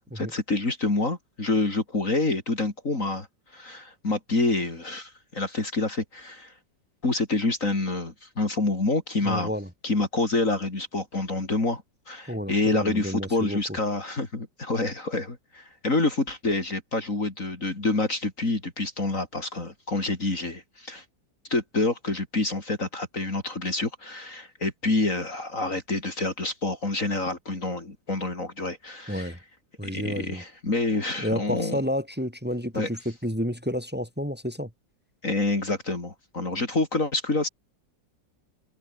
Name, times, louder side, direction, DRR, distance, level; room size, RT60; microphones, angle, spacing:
voice 1, 0.0-3.3 3.5-6.5 7.0-9.5 9.8-21.0 21.5-29.3 29.8-31.8 32.7-32.9 35.2-37.5, left 2 dB, 45° left, 4.3 m, -27 dB
voice 2, 9.2-9.7 12.3-13.6 29.1-29.4 29.8-30.4 31.2-34.7, equal, 5° right, 4.4 m, -30 dB
omnidirectional pair, 2.0 m